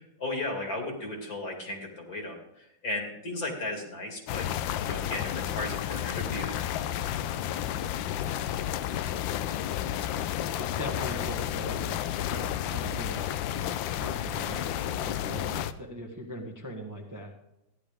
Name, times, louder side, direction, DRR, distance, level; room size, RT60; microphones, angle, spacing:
voice 1, 0.0-4.5 4.8-6.6, left 2 dB, 50° left, 2 dB, 2.7 m, -35 dB
sound 1, 4.3-15.7, left 11 dB, 80° left, 1.4 m, -31 dB
voice 2, 10.6-12.0 12.3-13.2 13.7-14.6 15.0-17.3, right 1 dB, 10° right, 0 dB, 1.1 m, -40 dB
14.5 x 11.0 x 3.5 m, 0.87 s
omnidirectional pair, 2.1 m